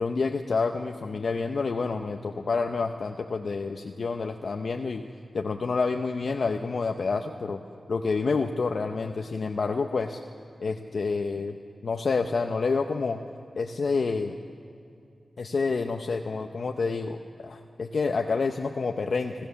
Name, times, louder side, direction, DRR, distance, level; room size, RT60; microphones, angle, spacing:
voice 1, 0.0-5.0 5.3-7.6 7.9-10.2 10.6-11.6 11.8-13.2 13.5-14.4 15.4-19.3, left 4 dB, 75° left, 4 dB, 0.9 m, -28 dB
26.5 x 15.0 x 7.1 m, 2.5 s
cardioid pair, 50°, 0 cm